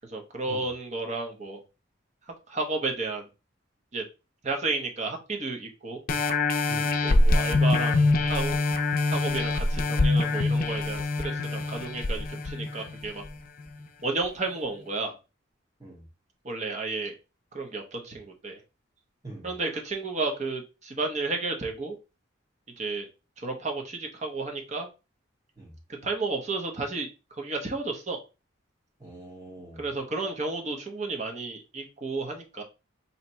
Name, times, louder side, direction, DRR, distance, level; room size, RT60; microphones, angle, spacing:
voice 1, 0.1-1.6 2.5-3.2 3.9-4.0 4.4-6.0 7.0-8.6 9.1-13.2 14.0-15.2 16.4-17.1 17.5-18.6 19.4-22.0 22.8-23.1 23.4-24.9 26.0-27.1 27.4-28.2 29.8-32.6, right 3 dB, 35° right, 2 dB, 0.9 m, -32 dB
sound 1, 6.1-13.3 13.8-13.9, left 2 dB, 45° left, 0.5 m, -24 dB
voice 2, 6.7-7.0 15.8-16.0 19.2-19.5 25.6-25.7 29.0-29.8, right 2 dB, 20° right, -2 dB, 1.4 m, -43 dB
3.3 x 2.8 x 4.2 m, 0.29 s
head